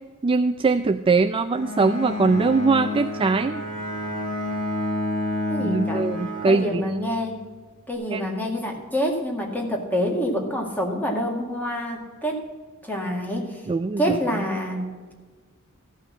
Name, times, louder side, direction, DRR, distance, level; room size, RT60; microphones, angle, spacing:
voice 1, 0.2-3.6 5.6-6.8 8.1-8.2 13.7-14.4, right 4 dB, 25° right, 8 dB, 0.3 m, -22 dB
Bowed string instrument, 1.5-7.3, left 2 dB, 35° left, 2.5 m, -29 dB
voice 2, 5.5-6.1 6.4-7.5 7.9-12.4 12.8-13.6 14.0-14.8, equal, 10° left, 0 dB, 2.0 m, -27 dB
14.0 x 5.7 x 7.3 m, 1.4 s
head